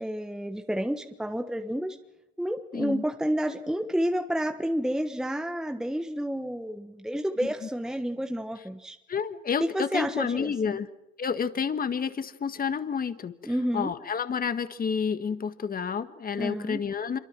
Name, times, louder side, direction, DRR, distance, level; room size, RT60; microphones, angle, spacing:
voice 1, 0.0-2.0 2.4-9.0 9.6-10.8 13.4-13.9 16.4-16.8, equal, ahead, 6 dB, 1.3 m, -30 dB
voice 2, 2.7-3.0 7.6-7.7 9.1-10.9 11.2-17.2, left 6 dB, 20° left, 11 dB, 1.8 m, -30 dB
26.5 x 24.0 x 6.2 m, 0.92 s
supercardioid pair, 115°, 43 cm